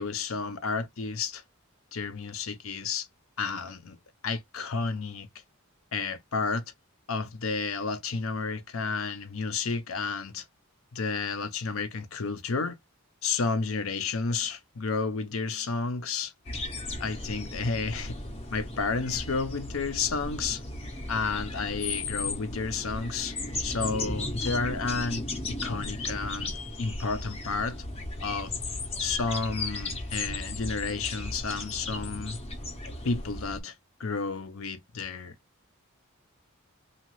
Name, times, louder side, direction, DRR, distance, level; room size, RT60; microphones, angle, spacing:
voice 1, 0.0-1.4 1.9-3.1 3.4-4.0 4.2-5.3 5.9-6.6 7.1-10.4 10.9-12.8 13.2-16.3 17.0-18.2 18.5-20.6 21.1-23.3 23.6-25.3 25.6-26.5 26.8-27.8 28.2-28.5 29.0-32.4 33.0-33.7 34.0-35.3, left 4 dB, 70° left, 0.7 m, -31 dB
sound 1, 16.5-33.6, left 2 dB, 25° left, 0.6 m, -35 dB
2.8 x 2.3 x 3.0 m
head